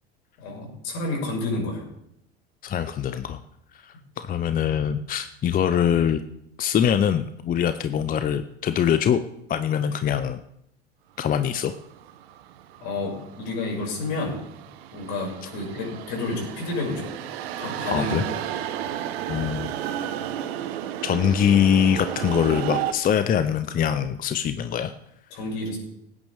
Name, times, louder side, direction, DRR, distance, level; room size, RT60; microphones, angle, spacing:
voice 1, 0.4-1.8 12.8-14.4 14.9-17.1 17.6-18.4 18.8-19.0 25.3-25.8, left 2 dB, 60° left, -1 dB, 6.2 m, -30 dB
voice 2, 2.6-3.4 3.7-6.2 6.6-9.2 9.5-10.4 11.2-11.7 17.9-18.2 19.3-19.7 21.0-24.9, left 9 dB, 25° left, 11 dB, 0.6 m, -23 dB
sound 1, 11.3-22.9, right 11 dB, 70° right, 1.1 m, -33 dB
18.5 x 9.6 x 3.5 m, 0.77 s
hypercardioid pair, 85°, 32 cm